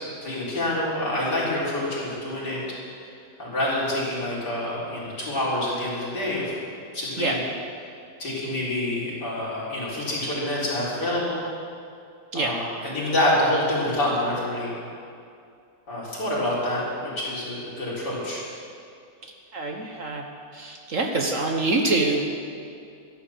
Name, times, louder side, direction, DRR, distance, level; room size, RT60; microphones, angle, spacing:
voice 1, 0.2-2.6 3.4-6.5 6.9-7.4 8.2-11.4 12.3-14.7 15.9-18.4, left 1 dB, 65° left, -7 dB, 4.7 m, -27 dB
voice 2, 19.2-20.3 20.5-22.2, right 2 dB, 50° right, 2 dB, 1.4 m, -25 dB
12.5 x 12.0 x 7.1 m, 2.4 s
omnidirectional pair, 1.9 m